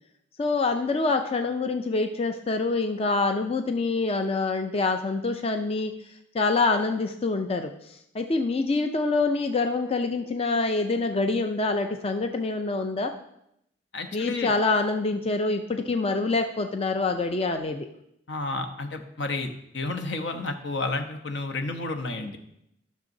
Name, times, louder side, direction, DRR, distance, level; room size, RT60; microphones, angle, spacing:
voice 1, 0.4-5.9 6.3-13.1 14.1-17.9, left 3 dB, 35° left, 6 dB, 0.4 m, -26 dB
voice 2, 13.9-14.5 18.3-22.4, left 3 dB, 75° left, 6 dB, 0.9 m, -31 dB
13.5 x 6.5 x 2.7 m, 0.79 s
head